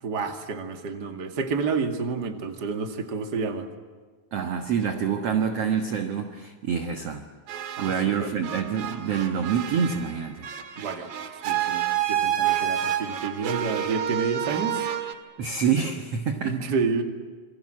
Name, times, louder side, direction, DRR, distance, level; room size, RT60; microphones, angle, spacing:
voice 1, 0.0-3.7 7.8-7.9 8.2-8.3 10.7-11.1 11.4-14.8 16.4-17.0, right 4 dB, 35° right, 5 dB, 2.2 m, -29 dB
voice 2, 4.3-7.3 7.8-10.5 15.4-16.6, right 7 dB, 55° right, 6 dB, 2.0 m, -26 dB
sound 1, 7.5-8.2 8.4-15.1, right 11 dB, 70° right, 3.4 m, -29 dB
28.0 x 24.5 x 7.7 m, 1.5 s
omnidirectional pair, 4.2 m